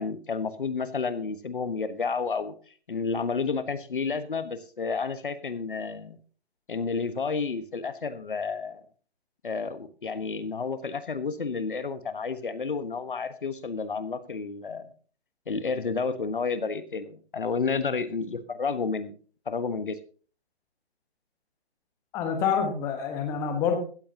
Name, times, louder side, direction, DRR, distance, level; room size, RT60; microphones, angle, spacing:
voice 1, 0.0-2.5 2.9-6.2 6.7-8.8 9.4-14.9 15.5-19.1 19.5-20.0, left 5 dB, 50° left, 13 dB, 1.3 m, -31 dB
voice 2, 22.1-23.8, left 7 dB, 10° left, 5 dB, 1.2 m, -27 dB
16.5 x 13.5 x 2.8 m, 0.41 s
figure-of-eight pair, 145°, 33 cm